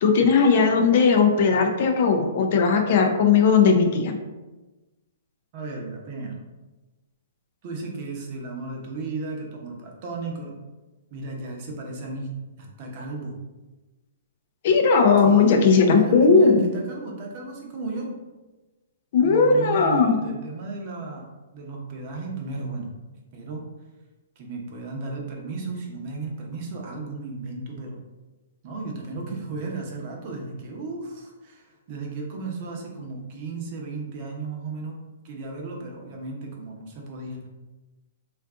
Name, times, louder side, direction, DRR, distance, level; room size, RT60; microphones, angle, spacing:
voice 1, 0.0-4.2 14.6-16.6 19.1-20.2, left 5 dB, 50° left, 4 dB, 0.4 m, -18 dB
voice 2, 5.5-6.3 7.6-10.5 11.1-12.3 12.6-13.4 15.2-18.1 19.2-21.2 21.5-22.9 23.3-23.6 24.4-28.0 28.6-35.0 35.2-37.4, right 3 dB, 40° right, 0 dB, 0.7 m, -34 dB
2.5 x 2.4 x 3.5 m, 1.2 s
hypercardioid pair, 145°, 0 cm